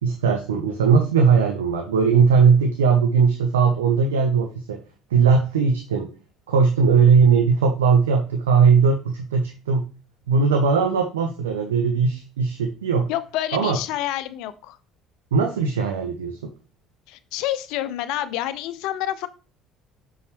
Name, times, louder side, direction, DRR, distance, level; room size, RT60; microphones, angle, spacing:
voice 1, 0.0-4.8 5.1-6.1 6.5-9.9 10.3-13.1 13.5-13.8 15.3-16.5, right 5 dB, 90° right, 4 dB, 0.8 m, -19 dB
voice 2, 13.1-14.8 17.1-19.3, left 13 dB, 70° left, 14 dB, 0.6 m, -28 dB
6.4 x 5.6 x 3.2 m, 0.34 s
hypercardioid pair, 60°, 0 cm